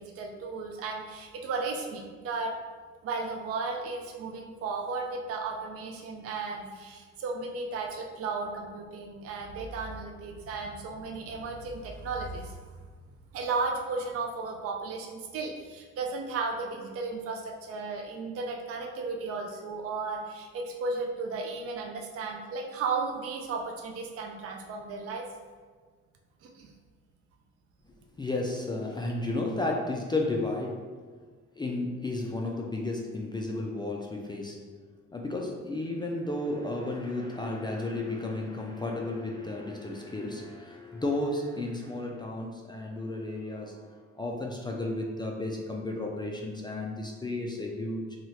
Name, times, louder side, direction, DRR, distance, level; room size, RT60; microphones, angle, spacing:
voice 1, 0.0-2.6 3.0-12.8 13.3-25.3 26.4-26.7, right 4 dB, 50° right, 2 dB, 0.4 m, -34 dB
voice 2, 28.2-30.9 31.6-34.6 35.1-48.2, left 2 dB, 15° left, -1 dB, 0.3 m, -33 dB
2.8 x 2.4 x 3.0 m, 1.5 s
cardioid pair, 90°, 30 cm